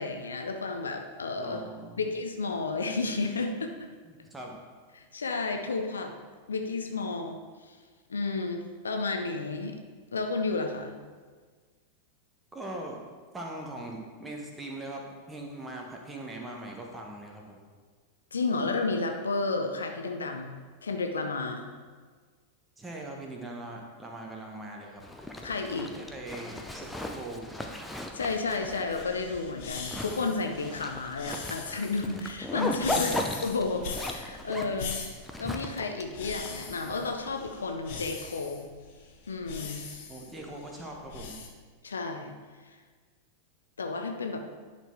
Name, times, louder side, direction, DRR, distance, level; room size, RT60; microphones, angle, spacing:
voice 1, 0.0-1.6 2.0-3.9 4.9-6.1 6.5-7.8 8.1-9.8 10.1-10.9 18.3-21.7 25.4-25.9 28.1-33.1 33.4-35.0 35.4-38.7 39.3-39.8 41.8-42.3 42.7-42.8 43.8-44.5, left 3 dB, 70° left, 5 dB, 0.7 m, -32 dB
voice 2, 1.4-2.0 4.0-4.6 12.5-13.0 13.3-17.7 22.8-25.0 26.0-27.4 32.8-33.3 40.1-41.4, right 1 dB, 10° right, 0 dB, 1.4 m, -41 dB
Zipper (clothing), 25.0-37.5, left 1 dB, 5° left, 0.6 m, -37 dB
sound 1, 28.9-41.5, left 5 dB, 50° left, 1.1 m, -41 dB
10.5 x 4.2 x 4.6 m, 1.5 s
figure-of-eight pair, 90°, 0 cm